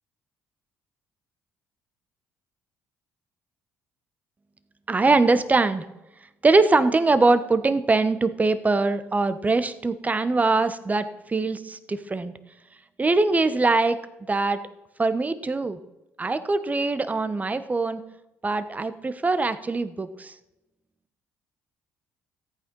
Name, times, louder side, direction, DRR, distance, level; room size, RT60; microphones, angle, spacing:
voice 1, 4.9-5.8 6.4-12.3 13.0-14.0 14.3-14.6 15.0-15.8 16.2-18.0 18.4-20.3, right 3 dB, 25° right, 13 dB, 1.2 m, -22 dB
14.0 x 8.8 x 5.5 m, 0.94 s
hypercardioid pair, 55°, 6 cm